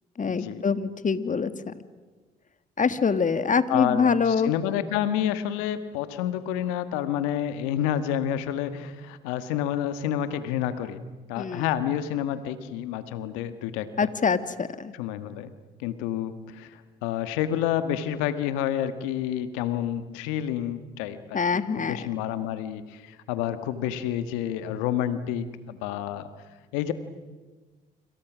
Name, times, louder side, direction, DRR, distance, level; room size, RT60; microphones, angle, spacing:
voice 1, 0.2-1.7 2.8-4.5 11.4-11.7 14.0-14.9 21.3-22.1, left 5 dB, 40° left, 12 dB, 1.7 m, -25 dB
voice 2, 3.7-11.0 11.3-14.1 15.0-15.5 15.8-26.3 26.7-26.9, left 10 dB, 85° left, 11 dB, 1.5 m, -29 dB
29.0 x 26.5 x 6.2 m, 1.3 s
hypercardioid pair, 50°, 20 cm